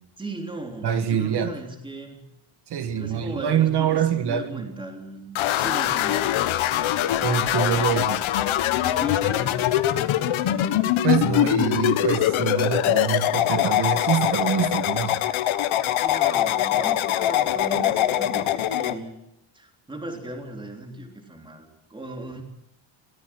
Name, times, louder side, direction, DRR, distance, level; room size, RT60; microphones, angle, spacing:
voice 1, 0.2-2.3 2.8-6.3 9.0-9.6 16.0-19.2 19.5-22.4, right 2 dB, 10° right, 3 dB, 3.6 m, -37 dB
voice 2, 0.8-1.5 2.7-4.6 7.2-8.2 11.0-15.2, right 8 dB, 55° right, 10 dB, 1.6 m, -25 dB
sound 1, 5.4-19.0, left 12 dB, 75° left, 1.5 m, -23 dB
23.5 x 18.0 x 6.1 m, 0.83 s
cardioid pair, 175°, 48 cm